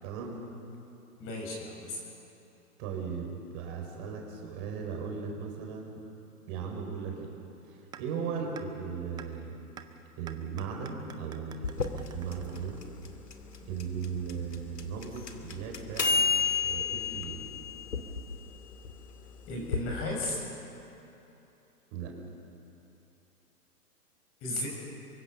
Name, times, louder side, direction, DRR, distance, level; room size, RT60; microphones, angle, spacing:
voice 1, 0.0-0.4 2.8-6.0 6.5-7.3 7.7-9.6 10.2-12.8 13.7-16.3 16.6-17.4 21.9-22.1, right 6 dB, 35° right, 1 dB, 4.6 m, -37 dB
voice 2, 1.2-2.0 19.5-20.4 24.4-24.7, left 1 dB, 30° left, 0 dB, 7.0 m, -34 dB
sound 1, 7.9-8.0 8.6-8.7 9.2-9.3 9.8-9.9 10.3-13.2, right 9 dB, 10° right, 0.6 m, -48 dB
sound 2, 11.6-19.8, left 5 dB, 85° left, 2.6 m, -32 dB
24.0 x 23.5 x 7.0 m, 3.0 s
hypercardioid pair, 125°, 46 cm